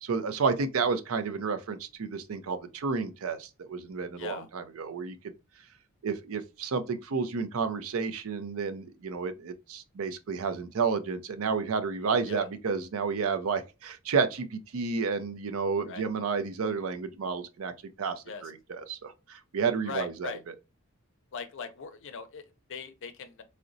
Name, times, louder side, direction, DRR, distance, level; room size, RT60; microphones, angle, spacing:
voice 1, 0.0-5.2 6.0-17.7 18.0-20.5, right 5 dB, 70° right, 0.5 m, -31 dB
voice 2, 19.8-20.4 21.3-23.4, left 5 dB, 60° left, 0.5 m, -40 dB
3.8 x 2.1 x 2.5 m
head